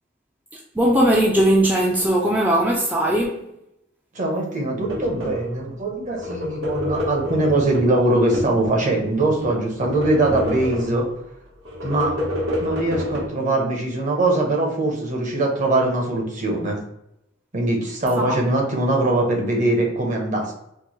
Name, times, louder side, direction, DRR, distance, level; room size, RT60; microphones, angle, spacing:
voice 1, 0.5-3.5 18.2-18.4, right 1 dB, 10° right, 0.3 m, -19 dB
voice 2, 4.1-11.1 11.8-12.1 12.6-16.8 17.5-20.5, right 2 dB, 40° right, 0.8 m, -22 dB
sound 1, 4.8-5.6 6.1-8.7 9.1-11.1 11.6-13.3, left 1 dB, 85° right, 1.0 m, -28 dB
4.5 x 2.1 x 3.0 m
head